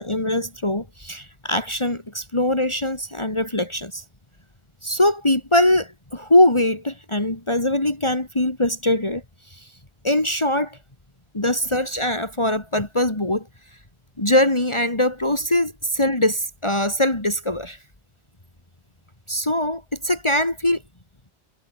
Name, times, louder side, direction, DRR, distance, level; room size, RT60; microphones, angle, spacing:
voice 1, 0.0-4.0 4.8-9.7 10.0-10.8 11.3-13.5 14.2-17.8 19.3-20.8, left 1 dB, 25° left, 2.8 m, -22 dB
omnidirectional pair, 1.1 m